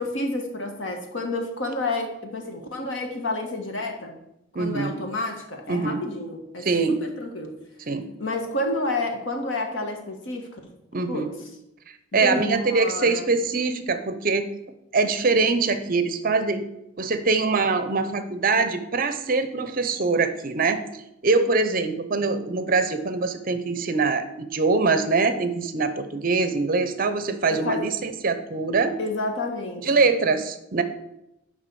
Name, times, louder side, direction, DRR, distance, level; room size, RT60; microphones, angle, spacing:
voice 1, 0.0-4.2 4.6-7.5 8.2-10.6 11.1-11.3 12.1-13.3 27.5-27.8 29.0-30.1, left 2 dB, 80° left, 4 dB, 1.5 m, -30 dB
voice 2, 4.5-5.0 5.7-6.0 6.6-7.0 7.9-8.1 10.9-11.3 12.1-14.5 14.9-16.7 17.0-28.9 29.8-30.8, right 4 dB, 50° right, 10 dB, 0.8 m, -23 dB
6.7 x 5.5 x 6.8 m, 0.86 s
head